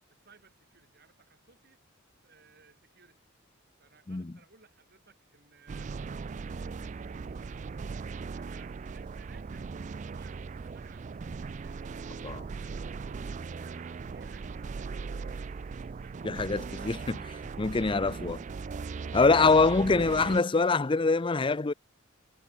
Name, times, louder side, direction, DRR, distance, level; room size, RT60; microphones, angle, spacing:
voice 1, 0.1-1.8 2.2-3.3 3.8-5.9 7.1-9.7 10.1-11.3 12.6-13.3 13.6-15.6 18.2-18.4 19.4-19.8, right 5 dB, 55° right, 5.4 m, -61 dB
sound 1, 5.7-20.4, right 4 dB, 35° right, 0.3 m, -39 dB
voice 2, 16.2-17.2 17.6-18.4 19.1-21.7, left 3 dB, 25° left, 0.5 m, -24 dB
head